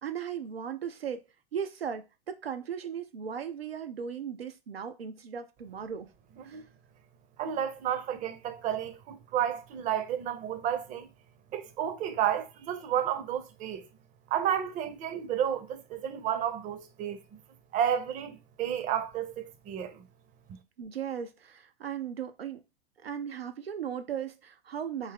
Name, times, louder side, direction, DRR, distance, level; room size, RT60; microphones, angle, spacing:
voice 1, 0.0-1.2 1.5-6.1 6.4-6.6 20.8-22.6 23.0-25.1, right 8 dB, 80° right, 0.5 m, -37 dB
voice 2, 7.4-11.1 11.5-13.9 14.3-17.2 17.7-20.0, right 9 dB, 25° right, 0.6 m, -31 dB
3.5 x 2.7 x 3.6 m
figure-of-eight pair, 90°, 30 cm